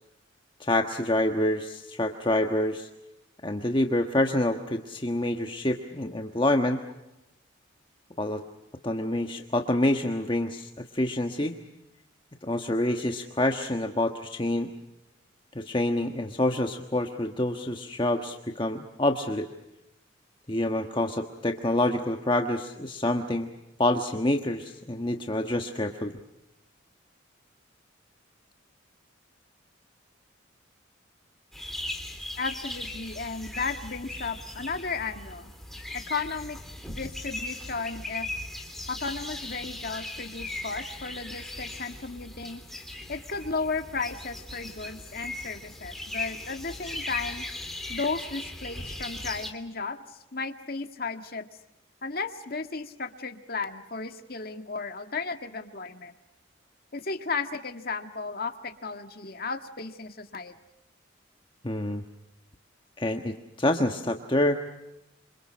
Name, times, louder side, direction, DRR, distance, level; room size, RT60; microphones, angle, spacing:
voice 1, 0.6-2.9 3.4-6.8 8.2-8.4 8.8-11.5 12.4-14.7 15.5-19.5 20.5-23.5 23.8-26.2 61.6-62.0 63.0-64.6, left 1 dB, 25° left, 4 dB, 1.4 m, -27 dB
sound 1, 31.5-49.5, left 1 dB, ahead, 3.2 m, -38 dB
voice 2, 32.4-35.5 35.9-36.6 36.9-38.3 38.9-42.6 43.1-47.5 47.9-51.5 52.0-56.1 56.9-60.6, left 4 dB, 50° left, 7 dB, 1.9 m, -34 dB
27.5 x 27.5 x 6.4 m, 0.93 s
head